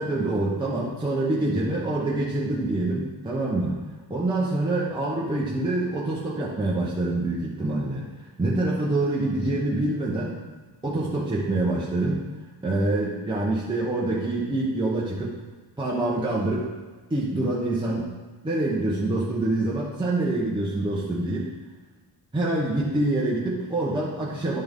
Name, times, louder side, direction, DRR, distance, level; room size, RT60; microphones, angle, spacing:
voice 1, 0.0-3.8 4.1-8.1 8.4-10.4 10.8-12.2 12.6-15.4 15.8-16.7 17.1-18.1 18.4-21.5 22.3-24.6, right 2 dB, 10° right, -6 dB, 0.9 m, -26 dB
10.5 x 6.0 x 3.6 m, 1.3 s
wide cardioid pair, 180°, 39 cm